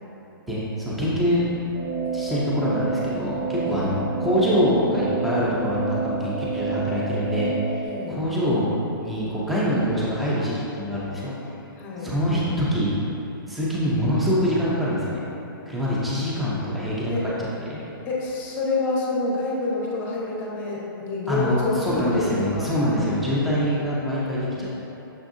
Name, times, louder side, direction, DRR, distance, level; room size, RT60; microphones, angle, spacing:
voice 1, 0.5-1.4 2.1-7.5 8.1-8.6 9.0-11.3 12.0-12.9 13.5-15.2 15.7-17.1 17.6-17.8 21.3-24.8, equal, ahead, -8 dB, 0.3 m, -24 dB
sound 1, 1.7-7.9, right 4 dB, 70° right, 1.2 m, -29 dB
voice 2, 7.8-8.2 11.8-12.1 17.1-17.2 18.0-22.7, left 3 dB, 15° left, -4 dB, 0.7 m, -28 dB
6.1 x 3.5 x 2.5 m, 3.0 s
hypercardioid pair, 160°, 12 cm